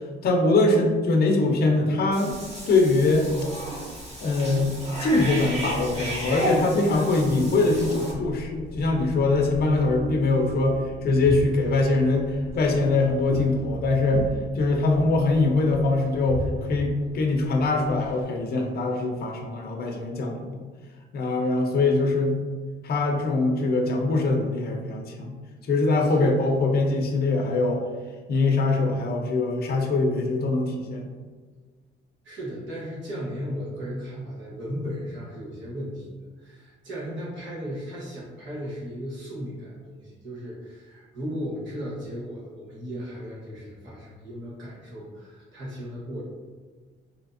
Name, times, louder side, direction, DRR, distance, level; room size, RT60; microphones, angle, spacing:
voice 1, 0.2-2.3 2.7-3.3 4.2-14.3 14.6-20.6 21.1-22.4 22.8-25.4 25.6-27.8 28.3-31.1, left 2 dB, 50° left, 2 dB, 0.5 m, -23 dB
Cat / Bathtub (filling or washing), 2.1-8.1, equal, 35° right, 1.4 m, -33 dB
sound 1, 2.3-18.2, left 1 dB, 15° right, 0.8 m, -39 dB
voice 2, 26.1-26.6 32.2-46.2, equal, 70° right, -6 dB, 1.2 m, -36 dB
3.4 x 2.7 x 2.5 m, 1.5 s
cardioid pair, 90°, 20 cm